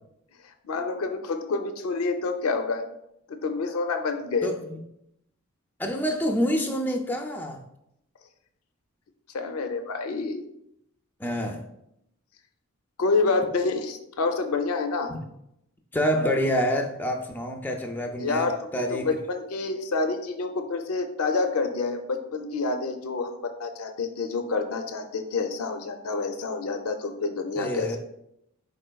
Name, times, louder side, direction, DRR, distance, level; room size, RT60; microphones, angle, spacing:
voice 1, 0.6-2.8 3.3-4.5 9.3-10.4 13.0-15.1 18.2-28.0, left 3 dB, 75° left, 7 dB, 0.5 m, -28 dB
voice 2, 4.4-4.8 5.8-7.6 11.2-11.6 15.1-15.2 15.9-19.1 27.6-28.0, equal, 10° left, 3 dB, 0.3 m, -27 dB
5.0 x 4.2 x 2.2 m, 0.79 s
head